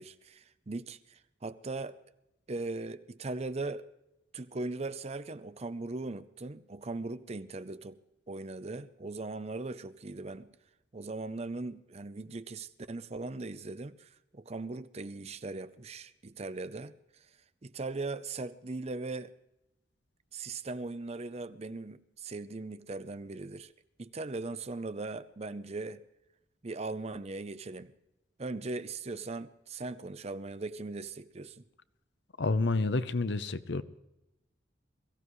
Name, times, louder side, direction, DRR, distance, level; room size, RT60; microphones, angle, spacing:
voice 1, 0.0-2.0 2.5-3.9 4.3-8.0 8.3-10.5 10.9-17.0 17.6-19.3 20.3-23.7 24.0-26.0 26.6-27.9 28.4-31.6, right 3 dB, 35° right, 0.6 m, -39 dB
voice 2, 32.4-33.8, left 3 dB, 65° left, 0.7 m, -29 dB
22.5 x 15.0 x 3.1 m
head